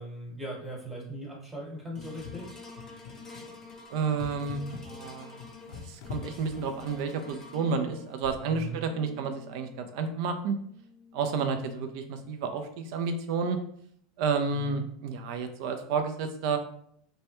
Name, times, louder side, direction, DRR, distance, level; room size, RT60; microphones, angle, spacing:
voice 1, 0.0-2.5 8.4-8.8 14.5-14.9, right 1 dB, 15° right, -5 dB, 1.1 m, -39 dB
sound 1, 2.0-7.3 8.2-8.5, left 6 dB, 65° left, 0.5 m, -45 dB
sound 2, 2.0-12.4 12.9-13.0, left 3 dB, 20° left, 0.7 m, -49 dB
voice 2, 3.9-5.4 5.7-10.6 11.1-13.6 14.2-16.6, right 5 dB, 60° right, 7 dB, 0.5 m, -31 dB
3.0 x 2.2 x 2.9 m, 0.67 s
hypercardioid pair, 95°, 3 cm